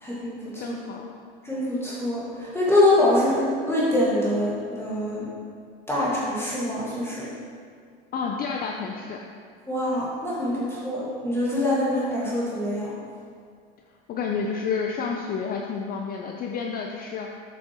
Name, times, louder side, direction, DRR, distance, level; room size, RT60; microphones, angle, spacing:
voice 1, 0.0-0.7 1.4-5.3 5.9-7.3 9.7-12.9, left 1 dB, 10° left, -8 dB, 1.6 m, -24 dB
voice 2, 0.6-1.1 8.1-9.2 14.1-17.4, left 5 dB, 30° left, 1 dB, 0.5 m, -30 dB
7.9 x 6.1 x 2.9 m, 2.2 s
supercardioid pair, 115°, 30 cm